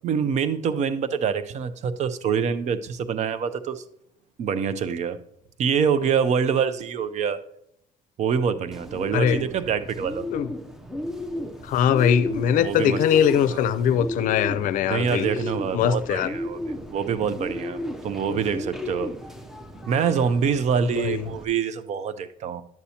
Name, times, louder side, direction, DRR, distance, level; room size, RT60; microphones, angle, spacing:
voice 1, 0.0-3.8 4.4-5.2 5.6-7.4 8.2-10.2 12.6-13.0 13.5-13.7 14.9-19.1 19.9-22.6, right 7 dB, 55° right, 0.6 m, -25 dB
Bird, 8.7-21.4, left 1 dB, 5° right, 0.6 m, -35 dB
voice 2, 11.6-15.3 15.7-16.3 18.3-18.4 21.0-21.3, left 9 dB, 75° left, 0.5 m, -21 dB
10.5 x 8.2 x 2.8 m
cardioid pair, 125°, 14 cm